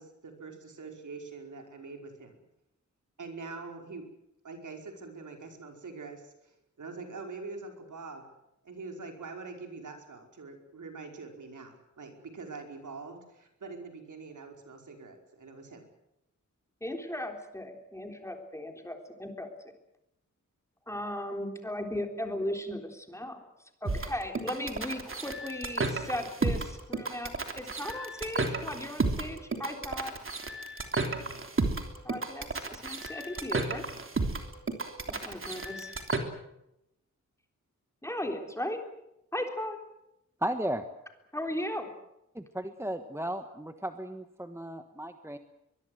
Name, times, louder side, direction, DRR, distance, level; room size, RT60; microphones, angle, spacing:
voice 1, 0.0-2.4 3.2-4.1 4.4-8.3 8.6-15.9, right 4 dB, 70° right, 4 dB, 5.1 m, -44 dB
voice 2, 16.8-19.5 20.9-23.5 23.8-30.1 32.0-33.8 35.1-35.9 38.0-38.8 39.3-39.8 41.3-41.9, left 1 dB, 10° left, 4 dB, 3.7 m, -37 dB
sound 1, 23.8-36.2, right 3 dB, 40° right, 3.2 m, -32 dB
voice 3, 40.4-40.8 42.3-45.4, right 1 dB, 10° right, 8 dB, 1.3 m, -35 dB
23.0 x 22.0 x 8.0 m, 0.85 s
wide cardioid pair, 145°, 31 cm